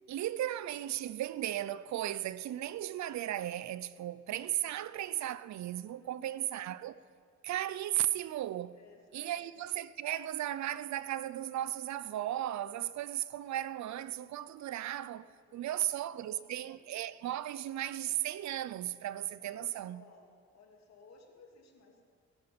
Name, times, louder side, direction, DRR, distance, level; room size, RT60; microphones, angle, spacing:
voice 1, 0.1-7.0 7.4-8.8 9.1-20.0, right 13 dB, 65° right, 0.6 m, -36 dB
voice 2, 6.0-6.5 8.8-9.4 15.5-16.9 19.4-22.0, left 3 dB, 60° left, 2.8 m, -60 dB
19.5 x 11.5 x 5.2 m
cardioid pair, 90°, 30 cm